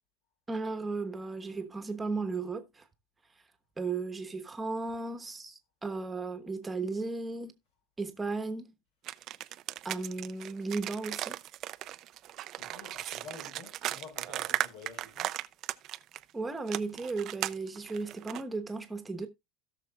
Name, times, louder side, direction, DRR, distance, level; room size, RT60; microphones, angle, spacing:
voice 1, 0.5-2.8 3.8-7.5 8.0-8.7 9.8-11.4 16.3-19.3, right 3 dB, 10° right, 1.1 m, -35 dB
sound 1, 9.0-16.2 16.7-18.4, right 13 dB, 45° right, 0.4 m, -36 dB
voice 2, 12.5-15.3, left 4 dB, 85° left, 5.2 m, -49 dB
17.0 x 6.3 x 2.4 m
cardioid pair, 140°, 0 cm